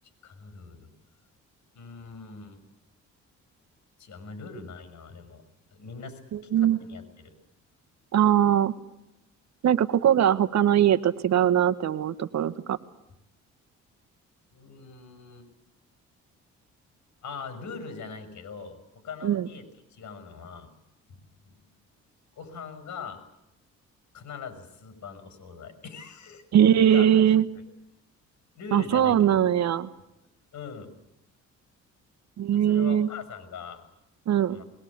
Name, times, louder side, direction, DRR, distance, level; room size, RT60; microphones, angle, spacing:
voice 1, 0.2-0.9 1.7-2.6 4.0-5.4 5.7-7.4 14.5-15.5 17.2-19.7 19.9-20.7 21.1-21.2 21.6-21.7 22.3-23.2 24.1-26.4 26.9-27.2 27.5-27.6 28.5-29.2 30.5-30.9 32.5-33.8 34.5-34.6, left 5 dB, 65° left, 9 dB, 6.4 m, -41 dB
voice 2, 6.3-6.8 8.1-8.7 9.6-12.8 19.2-19.5 26.5-27.5 28.7-29.9 32.4-33.1 34.3-34.6, right 10 dB, 65° right, 14 dB, 1.3 m, -21 dB
21.5 x 21.0 x 8.7 m, 0.88 s
cardioid pair, 90°, 30 cm